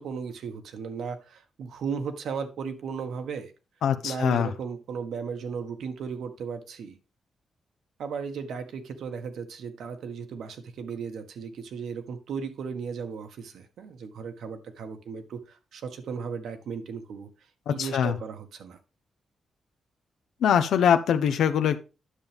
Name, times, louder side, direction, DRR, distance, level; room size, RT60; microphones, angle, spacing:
voice 1, 0.0-3.5 4.0-7.0 8.0-17.3 17.7-18.8, right 6 dB, 75° right, 7 dB, 1.4 m, -36 dB
voice 2, 3.8-4.5 17.7-18.1 20.4-21.8, left 8 dB, 90° left, 9 dB, 0.7 m, -23 dB
10.0 x 7.2 x 3.5 m, 0.30 s
wide cardioid pair, 145°, 0 cm